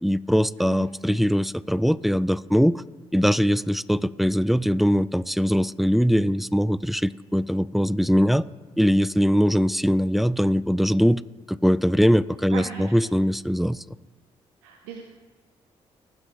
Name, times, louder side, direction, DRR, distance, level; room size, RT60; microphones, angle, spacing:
voice 1, 0.0-2.8 3.1-8.4 8.8-11.2 11.5-13.8, equal, ahead, 18 dB, 0.3 m, -21 dB
voice 2, 0.6-1.2 12.5-12.9 14.6-15.0, right 6 dB, 90° right, 3 dB, 0.6 m, -38 dB
18.5 x 6.2 x 3.2 m, 1.4 s
hypercardioid pair, 45°, 14 cm